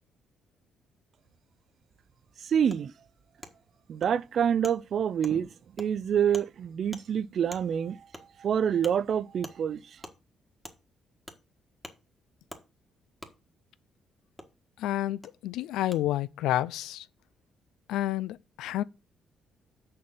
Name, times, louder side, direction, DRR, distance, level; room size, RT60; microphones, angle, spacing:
voice 1, 2.4-2.9 3.9-5.5 5.8-8.0 8.4-9.8, right 8 dB, 60° right, 0.5 m, -27 dB
Wood, 2.7-2.8 3.4-3.5 4.0-4.1 4.6-4.8 5.2-5.4 5.8-5.9 6.3-6.5 6.9-7.0 7.5-7.6 8.1-8.2 8.8-8.9 9.4-9.6 10.0-10.2 10.6-10.8 11.3-11.4 11.8-12.0 12.5-12.6 13.2-13.3 14.4-14.5 15.2-15.3 15.9-16.0, equal, 5° left, 1.6 m, -44 dB
voice 2, 14.8-17.1 17.9-18.8, left 13 dB, 90° left, 0.4 m, -30 dB
6.7 x 5.6 x 7.2 m
cardioid pair, 90°, 0 cm